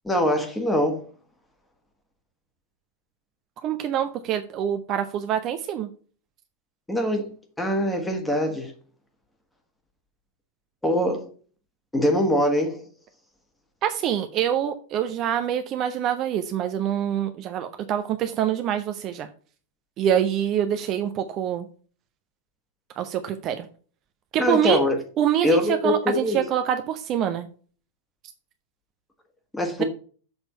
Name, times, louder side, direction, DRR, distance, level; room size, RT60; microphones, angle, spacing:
voice 1, 0.0-1.1 6.9-8.7 10.8-11.3 11.9-12.9 24.4-25.0 25.4-26.4 29.5-29.8, left 1 dB, 5° left, 1.7 m, -23 dB
voice 2, 3.6-5.9 13.8-19.3 20.0-21.7 23.0-23.7 24.3-24.8 25.2-27.5 29.8-29.9, right 10 dB, 35° right, 0.7 m, -25 dB
7.0 x 4.3 x 5.5 m
figure-of-eight pair, 90°, 0 cm